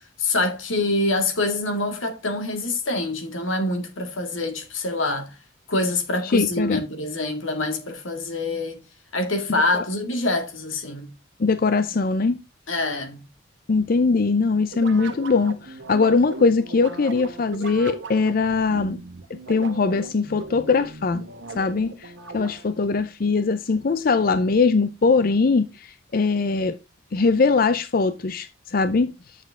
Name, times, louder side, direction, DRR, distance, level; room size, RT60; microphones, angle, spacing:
voice 1, 0.0-5.4 5.7-8.8 9.1-11.1 12.7-13.2, left 2 dB, 85° left, 2.1 m, -25 dB
voice 2, 6.2-6.8 9.7-9.8 11.4-12.4 13.7-19.0 19.3-21.3 21.5-26.8 27.1-29.1, left 4 dB, 45° left, 0.5 m, -21 dB
sound 1, 14.7-22.8, right 3 dB, 65° right, 1.3 m, -38 dB
9.3 x 6.7 x 3.6 m
head